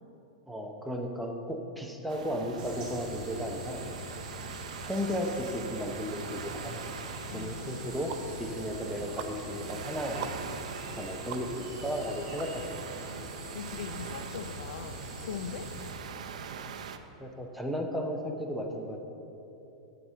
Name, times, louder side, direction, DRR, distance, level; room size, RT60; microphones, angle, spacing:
voice 1, 0.5-3.8 4.8-6.8 7.3-8.1 8.4-10.3 10.9-12.6 17.2-19.0, equal, ahead, 2 dB, 0.6 m, -34 dB
sound 1, 2.1-17.0, right 6 dB, 90° right, 0.6 m, -43 dB
sound 2, 2.6-15.9, right 1 dB, 25° right, 1.9 m, -44 dB
sound 3, 7.0-7.1 7.6-13.0, right 8 dB, 40° right, 0.5 m, -45 dB
voice 2, 7.3-8.2 13.5-15.7, left 7 dB, 85° left, 11 dB, 0.5 m, -41 dB
7.9 x 4.9 x 7.3 m, 2.9 s
supercardioid pair, 170°, 4 cm